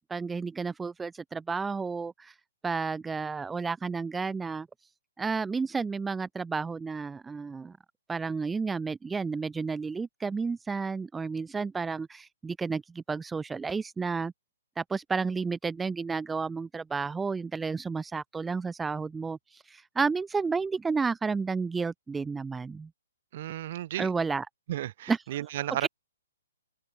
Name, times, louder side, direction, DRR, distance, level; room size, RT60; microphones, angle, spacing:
voice 1, 0.0-2.3 2.6-4.7 5.2-7.7 8.1-14.3 14.8-22.9 24.0-24.5 25.1-25.2 25.8-25.9, right 4 dB, 10° right, 0.3 m, -31 dB
voice 2, 23.3-24.1 24.7-25.9, right 13 dB, 50° right, 0.8 m, -33 dB
open air
hypercardioid pair, 130°, 0 cm